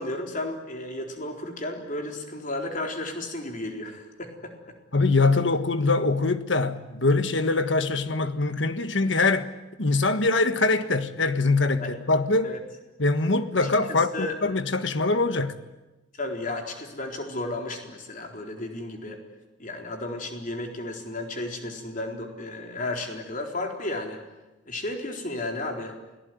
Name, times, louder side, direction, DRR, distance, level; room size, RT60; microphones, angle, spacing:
voice 1, 0.0-4.7 11.8-11.9 12.4-12.6 13.6-14.4 16.2-19.2 19.6-24.2 24.7-26.0, left 2 dB, 45° left, 4.1 m, -33 dB
voice 2, 4.9-9.5 9.8-12.5 13.0-15.6, left 3 dB, 75° left, 1.6 m, -23 dB
28.5 x 18.5 x 9.5 m
head